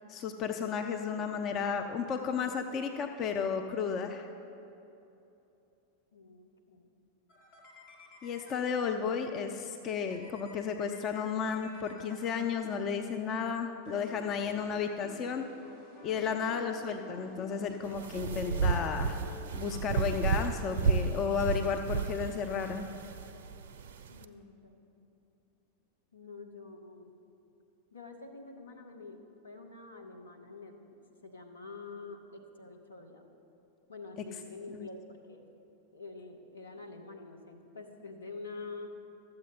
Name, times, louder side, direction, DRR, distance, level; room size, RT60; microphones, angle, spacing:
voice 1, 0.1-4.3 8.2-15.5 16.0-19.2 19.5-22.9 34.7-34.9, left 6 dB, 30° left, 5 dB, 0.5 m, -33 dB
voice 2, 6.1-6.9 24.1-24.8 26.1-27.1 27.9-31.0 31.2-33.3 33.9-35.4 35.9-39.0, left 3 dB, 75° left, 3 dB, 1.0 m, -47 dB
sound 1, 7.3-9.2 10.1-12.9 13.8-21.4, left 2 dB, 50° left, 1.7 m, -51 dB
sound 2, 17.8-24.2, right 5 dB, 60° right, 0.4 m, -32 dB
13.0 x 7.7 x 4.3 m, 2.9 s
figure-of-eight pair, 90°, 0 cm